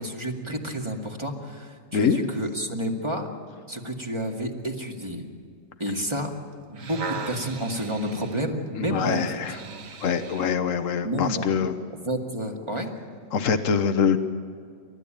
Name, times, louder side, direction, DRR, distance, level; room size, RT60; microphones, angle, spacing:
voice 1, 0.0-3.3 3.7-5.2 5.8-6.3 6.7-9.3 11.0-11.5 12.0-12.9, equal, 20° right, 1 dB, 2.1 m, -30 dB
sound 1, 6.5-10.6 11.3-11.4, right 5 dB, 80° right, 1.7 m, -38 dB
voice 2, 8.7-9.6 10.0-11.8 13.3-14.2, left 6 dB, 75° left, 10 dB, 1.4 m, -24 dB
29.0 x 13.5 x 8.9 m, 2.2 s
omnidirectional pair, 1.4 m